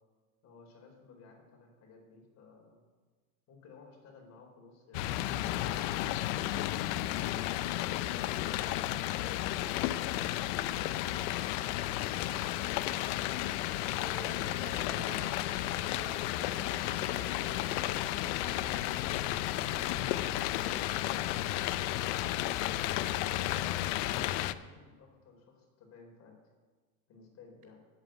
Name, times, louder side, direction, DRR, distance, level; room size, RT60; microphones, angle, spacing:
voice 1, 0.4-2.8 3.5-5.9 23.4-26.4 27.1-27.8, left 4 dB, 35° left, 1 dB, 4.0 m, -56 dB
sound 1, 4.9-24.5, left 14 dB, 55° left, 0.6 m, -33 dB
voice 2, 13.9-18.6 19.6-21.1, right 3 dB, 80° right, 0 dB, 4.7 m, -51 dB
sound 2, 24.5-24.7, left 6 dB, 75° left, 1.6 m, -51 dB
8.9 x 8.2 x 9.0 m, 1.4 s
supercardioid pair, 135°, 44 cm